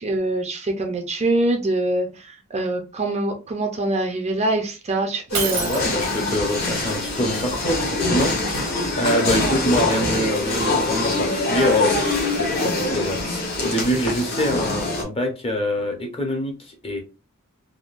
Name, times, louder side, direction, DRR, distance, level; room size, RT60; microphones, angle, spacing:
voice 1, 0.0-5.8, right 2 dB, 30° right, 3 dB, 0.5 m, -24 dB
sound 1, 5.3-15.0, left 2 dB, 45° left, 1.0 m, -24 dB
Shatter, 5.3-6.4, right 5 dB, 85° right, 1.1 m, -27 dB
voice 2, 5.5-12.0 12.4-17.0, equal, 25° left, 2 dB, 0.8 m, -25 dB
3.5 x 2.2 x 2.4 m, 0.29 s
head